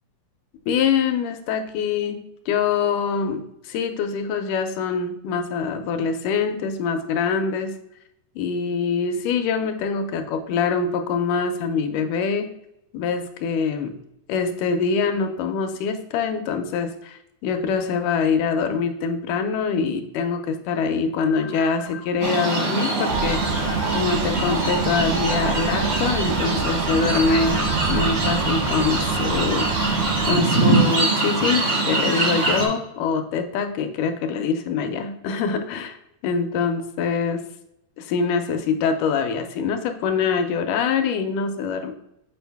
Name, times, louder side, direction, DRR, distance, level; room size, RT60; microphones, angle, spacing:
voice 1, 0.7-2.2 2.5-7.8 8.4-12.5 12.9-14.0 14.3-23.7 23.9-27.6 27.9-36.0 36.2-37.4 38.0-41.9, left 5 dB, 85° left, 6 dB, 2.2 m, -24 dB
sound 1, 21.3-22.1 23.3-24.1 25.3-26.1 27.3-28.1, left 8 dB, 70° left, 1.3 m, -40 dB
sound 2, 22.2-32.7, right 3 dB, 55° right, 0.8 m, -23 dB
sound 3, 23.1-30.4, right 6 dB, 80° right, 2.0 m, -29 dB
6.8 x 4.6 x 3.4 m, 0.83 s
omnidirectional pair, 3.6 m